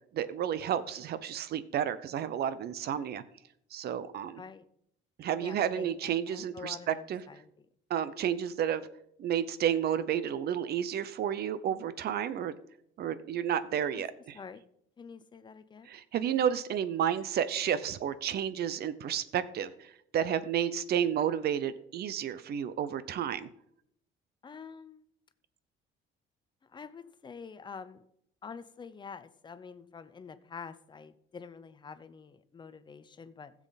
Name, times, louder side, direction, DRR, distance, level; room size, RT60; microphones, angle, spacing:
voice 1, 0.1-3.2 3.7-4.4 5.2-7.2 7.9-8.9 9.2-12.5 13.0-14.4 15.9-23.5, right 9 dB, 50° right, 15 dB, 0.8 m, -31 dB
voice 2, 5.4-7.7 13.9-14.0 14.3-14.6 15.0-15.9 24.4-25.0 26.7-28.0 28.4-33.5, left 5 dB, 20° left, 13 dB, 0.6 m, -47 dB
15.0 x 7.4 x 4.1 m, 0.73 s
cardioid pair, 160°, 21 cm